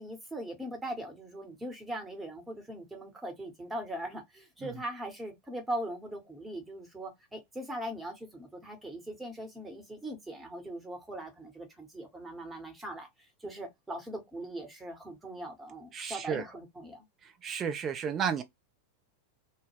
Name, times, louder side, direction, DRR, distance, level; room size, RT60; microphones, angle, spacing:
voice 1, 0.0-17.1, right 1 dB, 10° right, 1.0 m, -40 dB
voice 2, 15.9-16.4 17.4-18.4, right 7 dB, 25° right, 0.5 m, -32 dB
2.2 x 2.1 x 3.1 m
figure-of-eight pair, 90°, 0 cm